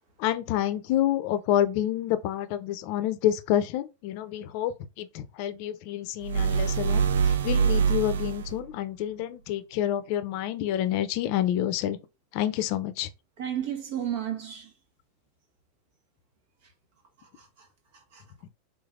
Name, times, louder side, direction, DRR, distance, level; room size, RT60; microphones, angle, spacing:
voice 1, 0.2-12.0 12.3-13.1, left 12 dB, 55° left, 0.5 m, -28 dB
sound 1, 6.2-8.6, right 6 dB, 90° right, 0.4 m, -24 dB
voice 2, 13.4-14.7 17.2-17.7 17.9-18.2, right 10 dB, 65° right, 1.5 m, -33 dB
3.7 x 3.3 x 2.5 m
hypercardioid pair, 120°, 0 cm